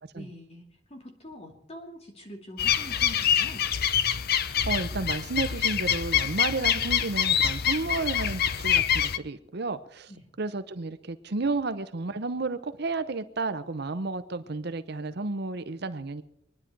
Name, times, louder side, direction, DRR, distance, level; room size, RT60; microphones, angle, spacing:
voice 1, 0.1-3.7 10.1-10.2, left 1 dB, 35° left, 3 dB, 2.4 m, -45 dB
sound 1, 2.6-9.2, left 9 dB, 55° left, 0.7 m, -25 dB
voice 2, 4.4-10.1 10.4-16.2, right 3 dB, 60° right, 11 dB, 0.8 m, -32 dB
24.5 x 10.0 x 4.6 m, 0.76 s
head